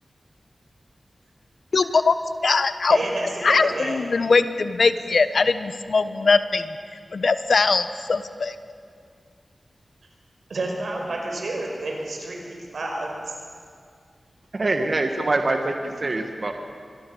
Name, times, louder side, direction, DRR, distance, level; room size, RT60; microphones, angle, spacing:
voice 1, 1.7-2.2 2.4-3.0 3.4-6.8 7.1-8.5, left 4 dB, 75° left, 11 dB, 1.1 m, -21 dB
voice 2, 2.9-4.0 10.5-13.4, right 2 dB, 85° right, 1 dB, 5.2 m, -30 dB
voice 3, 14.5-16.5, right 2 dB, 55° right, 4 dB, 1.7 m, -24 dB
25.5 x 22.0 x 7.1 m, 2.2 s
wide cardioid pair, 60°, 0 cm